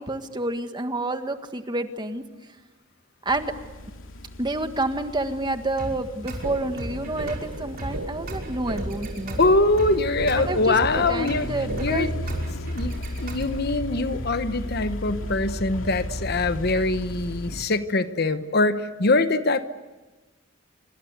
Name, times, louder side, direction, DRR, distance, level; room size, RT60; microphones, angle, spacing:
voice 1, 0.0-2.2 3.2-3.5 4.4-9.4 10.4-12.1, right 2 dB, 25° right, 7 dB, 1.7 m, -29 dB
sound 1, 3.3-17.6, equal, 90° left, 2.5 m, -35 dB
sound 2, 5.8-13.8, right 1 dB, 50° right, 5.7 m, -36 dB
sound 3, 6.4-12.4, right 2 dB, 85° right, 1.3 m, -36 dB
voice 2, 9.4-11.5 11.8-12.1 12.7-19.7, left 2 dB, 55° left, 11 dB, 1.1 m, -23 dB
27.5 x 25.0 x 8.2 m, 1.2 s
head